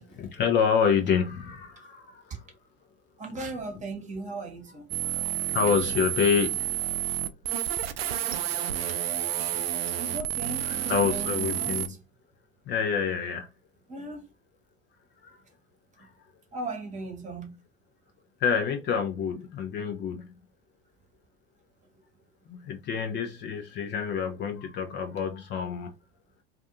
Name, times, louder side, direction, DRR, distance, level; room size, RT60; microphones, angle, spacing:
voice 1, 0.1-2.4 5.0-6.7 10.6-12.0 12.7-13.5 15.2-15.4 16.0-16.1 18.4-20.4 22.5-25.9, left 6 dB, 35° left, 0.6 m, -28 dB
voice 2, 3.2-4.8 10.0-12.0 13.9-14.3 16.5-17.5, right 3 dB, 25° right, 1.1 m, -37 dB
sound 1, 4.9-11.9, right 12 dB, 75° right, 0.4 m, -30 dB
2.5 x 2.4 x 2.4 m
hypercardioid pair, 80°, 30 cm